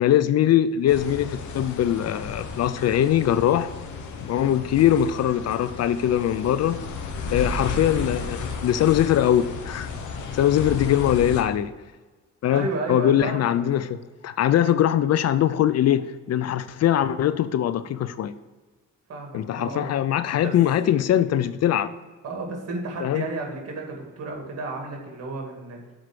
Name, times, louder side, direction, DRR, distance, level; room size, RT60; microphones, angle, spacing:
voice 1, 0.0-3.7 4.2-6.8 7.3-9.9 10.3-11.7 12.4-18.3 19.3-21.9 23.0-23.3, left 11 dB, 60° left, 0.5 m, -22 dB
sound 1, 0.9-11.4, left 4 dB, 75° left, 1.2 m, -33 dB
voice 2, 12.5-13.5 19.1-19.9 20.4-20.5 22.2-25.8, right 3 dB, 55° right, 2.5 m, -32 dB
7.6 x 4.6 x 6.2 m
cardioid pair, 90°, 30 cm